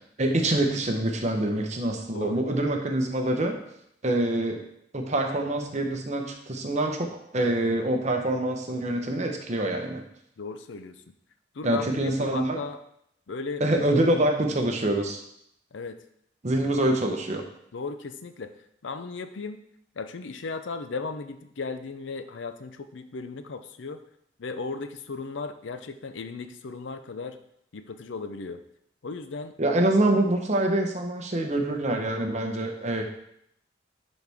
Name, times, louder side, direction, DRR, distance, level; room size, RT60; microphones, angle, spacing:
voice 1, 0.2-3.6 4.0-4.6 4.9-10.0 11.6-12.6 13.6-15.2 16.4-17.4 29.6-33.0, right 1 dB, 40° right, 3 dB, 0.9 m, -25 dB
voice 2, 2.1-2.5 10.4-11.0 11.5-12.8 13.3-13.6 15.7-16.0 17.7-18.5 18.8-19.6 20.0-24.0 24.4-27.4 27.7-28.6 29.0-29.5, left 4 dB, 85° left, 9 dB, 0.6 m, -36 dB
10.5 x 4.1 x 3.5 m, 0.73 s
head